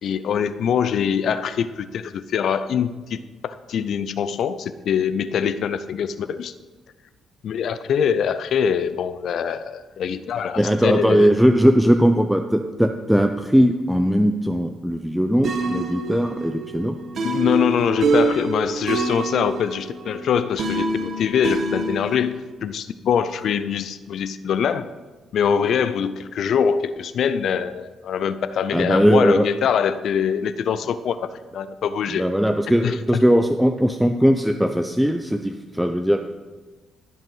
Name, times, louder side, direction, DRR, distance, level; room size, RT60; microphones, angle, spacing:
voice 1, 0.0-6.5 7.4-11.3 17.2-24.9 25.3-32.3 32.7-33.2, left 7 dB, 65° left, 13 dB, 0.4 m, -23 dB
voice 2, 10.6-17.0 28.7-29.5 32.1-36.2, equal, ahead, 6 dB, 0.5 m, -19 dB
sound 1, 15.4-22.3, right 3 dB, 55° right, 1.1 m, -26 dB
15.5 x 5.5 x 5.6 m, 1.3 s
cardioid pair, 90°, 0 cm